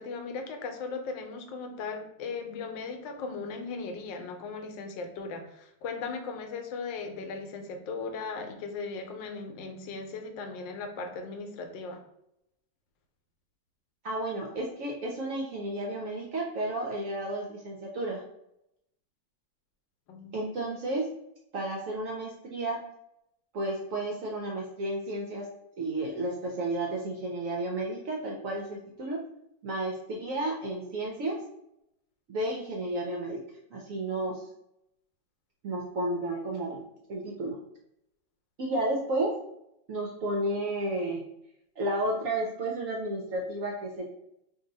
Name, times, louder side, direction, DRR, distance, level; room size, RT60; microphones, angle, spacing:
voice 1, 0.0-12.0 20.1-20.4, left 4 dB, 80° left, 5 dB, 1.3 m, -37 dB
voice 2, 14.0-18.2 20.3-21.1 21.5-22.8 23.5-25.5 25.8-29.2 29.6-31.4 32.3-33.4 33.7-34.5 35.6-36.8 37.1-37.6 38.6-39.4 39.9-41.3 41.8-44.0, right 1 dB, 70° right, -1 dB, 0.8 m, -32 dB
2.8 x 2.7 x 3.9 m, 0.82 s
omnidirectional pair, 1.9 m